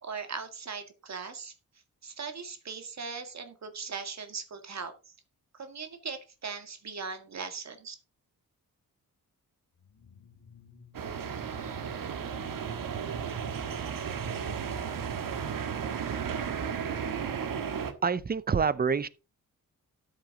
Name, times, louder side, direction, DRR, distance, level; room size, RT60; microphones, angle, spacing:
voice 1, 0.0-1.5 2.0-5.1 5.5-8.0, right 5 dB, 50° right, 1.9 m, -39 dB
sound 1, 9.8-13.9, left 6 dB, 70° left, 2.3 m, -57 dB
sound 2, 10.9-17.9, right 7 dB, 70° right, 1.6 m, -34 dB
voice 2, 18.0-19.1, right 5 dB, 25° right, 0.7 m, -26 dB
13.0 x 7.6 x 3.8 m
wide cardioid pair, 120°, 34 cm